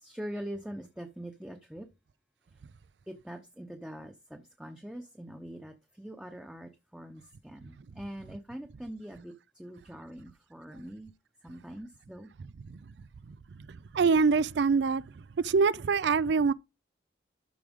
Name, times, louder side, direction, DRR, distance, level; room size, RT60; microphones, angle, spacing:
voice 1, 0.0-1.9 3.1-11.1 11.4-12.3, equal, 5° right, 0.8 m, -43 dB
voice 2, 13.7-15.0 15.4-16.5, right 5 dB, 70° right, 0.4 m, -25 dB
12.0 x 4.8 x 3.6 m
head